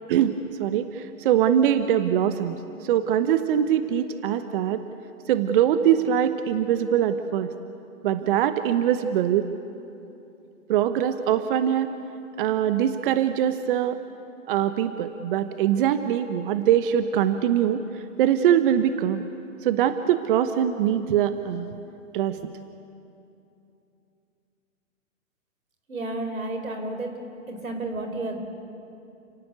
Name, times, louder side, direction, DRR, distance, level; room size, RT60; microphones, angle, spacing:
voice 1, 0.1-2.6 2.8-4.8 5.3-7.5 8.0-9.5 10.7-11.9 12.4-14.0 14.5-17.8 18.2-19.2 19.6-21.7 22.1-22.4, right 10 dB, 40° right, 10 dB, 1.0 m, -22 dB
voice 2, 25.9-27.1 27.5-28.4, right 2 dB, 90° right, 5 dB, 4.4 m, -31 dB
30.0 x 17.5 x 8.2 m, 2.8 s
hypercardioid pair, 130°, 40 cm